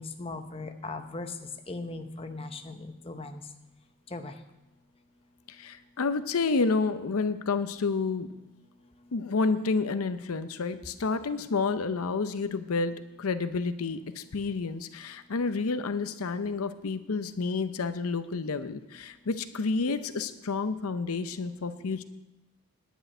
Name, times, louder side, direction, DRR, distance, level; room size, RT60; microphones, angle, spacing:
voice 1, 0.0-1.3 1.7-3.4 4.1-4.3, left 2 dB, 25° left, 6 dB, 0.7 m, -38 dB
voice 2, 5.5-8.3 9.1-22.0, left 4 dB, 80° left, 11 dB, 0.6 m, -30 dB
10.5 x 6.3 x 9.0 m, 1.0 s
head